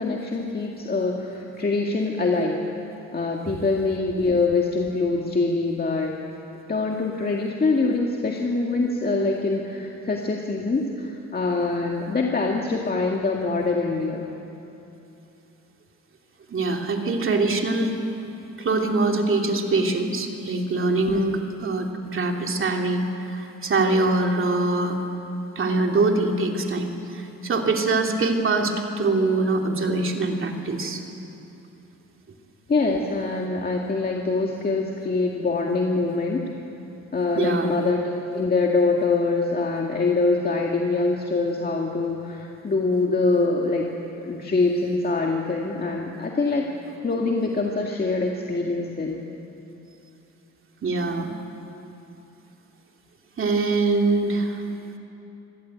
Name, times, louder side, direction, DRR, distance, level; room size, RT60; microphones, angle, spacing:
voice 1, 0.0-2.6 3.1-6.1 6.7-14.3 21.1-21.4 32.7-36.4 37.1-43.9 44.2-46.6 47.0-49.2, left 3 dB, 30° left, 0 dB, 2.0 m, -24 dB
voice 2, 16.5-18.0 18.6-25.0 25.5-31.0 37.3-37.7 50.8-51.3 53.4-54.6, right 3 dB, 45° right, 2 dB, 2.9 m, -23 dB
25.0 x 16.5 x 9.3 m, 3.0 s
cardioid pair, 90°, 30 cm